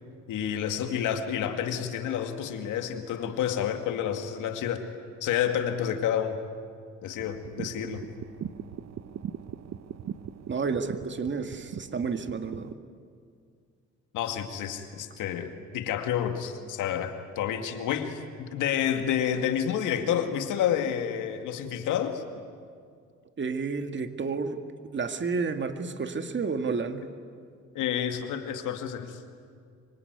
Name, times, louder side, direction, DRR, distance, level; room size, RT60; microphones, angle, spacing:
voice 1, 0.3-4.8 5.2-6.4 7.0-8.1 14.1-22.2 27.7-29.2, left 9 dB, 90° left, 6 dB, 2.3 m, -29 dB
sound 1, 7.2-12.7, right 8 dB, 60° right, 1.0 m, -40 dB
voice 2, 10.5-12.7 23.4-24.6 24.9-27.1, right 4 dB, 40° right, 7 dB, 2.0 m, -30 dB
25.5 x 24.5 x 9.6 m, 2.2 s
cardioid pair, 90°, 30 cm